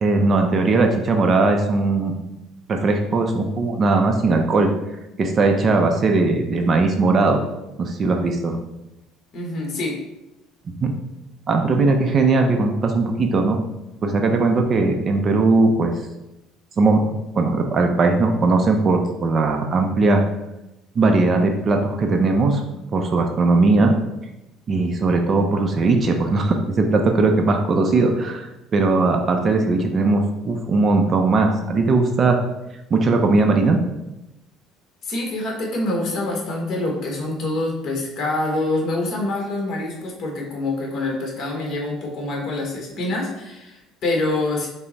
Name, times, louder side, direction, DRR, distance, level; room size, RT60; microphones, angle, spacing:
voice 1, 0.0-2.2 2.7-4.7 5.2-7.4 7.8-8.6 10.8-10.9 11.5-13.6 14.0-15.9 16.8-20.2 21.0-22.6 22.9-23.9 24.7-32.4 32.9-33.8, right 3 dB, 35° right, 4 dB, 0.5 m, -19 dB
voice 2, 9.3-10.0 35.0-44.7, left 2 dB, 45° left, -1 dB, 1.1 m, -26 dB
5.6 x 2.0 x 4.0 m, 0.95 s
cardioid pair, 120°, 0 cm